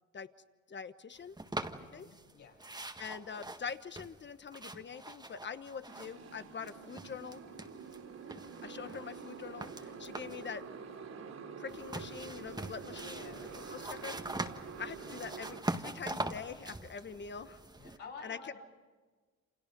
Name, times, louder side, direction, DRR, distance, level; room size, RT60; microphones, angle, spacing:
voice 1, 0.7-1.4 1.9-2.1 3.0-7.4 8.6-10.6 11.6-13.3 13.7-14.2 14.8-17.6 18.2-18.4, left 6 dB, 35° left, 11 dB, 1.3 m, -44 dB
sound 1, 1.4-2.3 2.6-6.3 6.6-8.0 8.3-10.5 11.7-18.0, right 2 dB, 15° right, 1.7 m, -43 dB
voice 2, 1.8-2.6 7.1-7.2 13.0-13.9 17.8-18.6, left 4 dB, 75° left, -1 dB, 7.0 m, -51 dB
Motorcycle, 5.9-15.6, right 5 dB, 60° right, 3.5 m, -47 dB
29.0 x 27.0 x 5.4 m, 1.4 s
cardioid pair, 90°, 30 cm